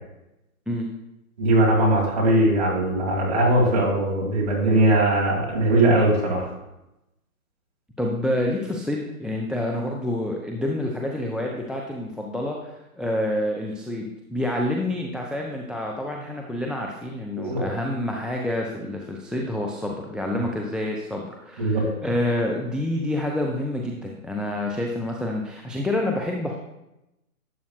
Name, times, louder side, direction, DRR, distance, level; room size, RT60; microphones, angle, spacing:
voice 1, 1.4-6.5 17.4-17.6 21.6-21.9, right 1 dB, 25° right, -3 dB, 1.9 m, -20 dB
voice 2, 8.0-26.6, left 1 dB, ahead, 0 dB, 0.3 m, -28 dB
12.0 x 7.6 x 2.3 m, 0.91 s
hypercardioid pair, 180°, 45 cm